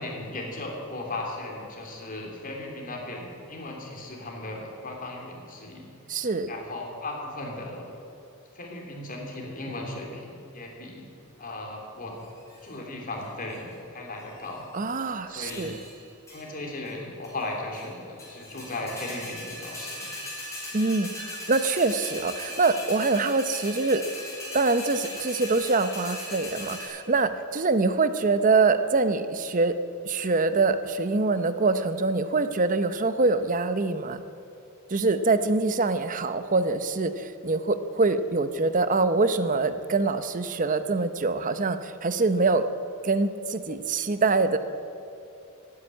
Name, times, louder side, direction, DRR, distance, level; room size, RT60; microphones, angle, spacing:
voice 1, 0.0-5.9 6.5-8.0 8.5-11.1 11.4-12.2 12.6-14.6 15.3-15.8 16.3-20.1, left 2 dB, 40° left, 0 dB, 3.0 m, -36 dB
voice 2, 6.1-6.5 14.7-15.8 20.7-24.0 24.5-29.7 30.1-34.2 34.9-42.7 43.0-44.6, right 3 dB, 35° right, 11 dB, 0.7 m, -24 dB
sound 1, 12.2-12.7 13.2-13.7 14.2-14.9 15.5-16.0 16.3-16.4 16.9-17.0 17.2-17.9 18.2-26.8, left 1 dB, 15° left, 4.9 m, -39 dB
15.5 x 9.7 x 9.0 m, 2.7 s
head